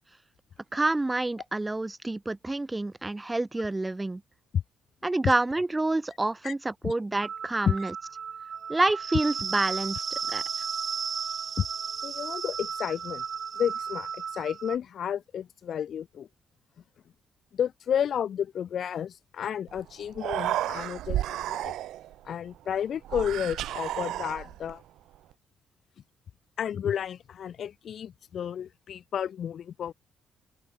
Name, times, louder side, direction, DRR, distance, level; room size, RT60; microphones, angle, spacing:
voice 1, 0.7-4.2 5.0-7.9 8.7-10.4, right 2 dB, 15° right, 0.7 m, -28 dB
sound 1, 7.2-14.8, right 7 dB, 50° right, 0.3 m, -34 dB
voice 2, 12.0-13.2 13.5-16.3 17.5-21.8 22.2-24.8 26.6-29.9, left 9 dB, 60° left, 1.0 m, -31 dB
Human voice, 19.7-19.8 20.1-22.1 23.0-24.7, right 13 dB, 80° right, 0.8 m, -32 dB
open air
cardioid pair, 90°, 0 cm